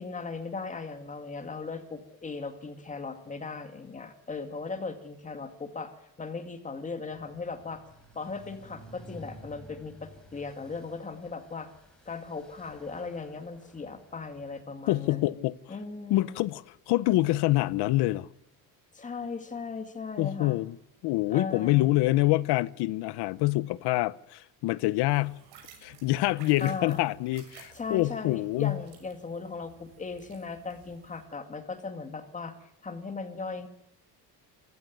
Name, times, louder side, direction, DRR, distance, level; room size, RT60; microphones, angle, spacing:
voice 1, 0.0-5.9 6.2-7.8 8.2-11.7 12.1-15.3 15.7-16.4 18.9-20.6 21.3-21.9 26.6-27.1 27.7-32.6 32.8-33.7, left 4 dB, 20° left, 2.2 m, -38 dB
sound 1, 7.1-14.6, right 1 dB, ahead, 4.7 m, -53 dB
voice 2, 14.9-15.6 16.1-18.3 20.2-20.7 21.0-25.3 25.8-28.8, left 18 dB, 85° left, 0.9 m, -26 dB
sound 2, 25.1-31.2, right 7 dB, 70° right, 6.6 m, -55 dB
26.0 x 15.5 x 9.5 m
cardioid pair, 165°, 39 cm